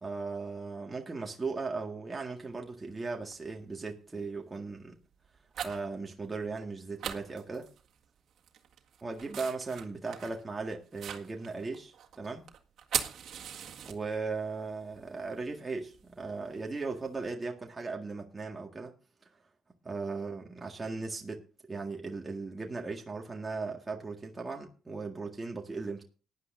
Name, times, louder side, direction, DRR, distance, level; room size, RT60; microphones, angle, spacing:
voice 1, 0.0-5.0 5.6-7.7 9.0-12.5 13.9-18.9 19.8-21.4 21.7-26.0, right 4 dB, 25° right, 1.9 m, -37 dB
sound 1, 2.4-2.5 3.3-3.6 4.1-4.4 5.1-5.9 6.2-6.3 6.6-6.7 7.0-8.0 8.4-14.4 14.7-17.2, right 9 dB, 70° right, 1.8 m, -40 dB
18.5 x 10.5 x 2.6 m
cardioid pair, 90°, 0 cm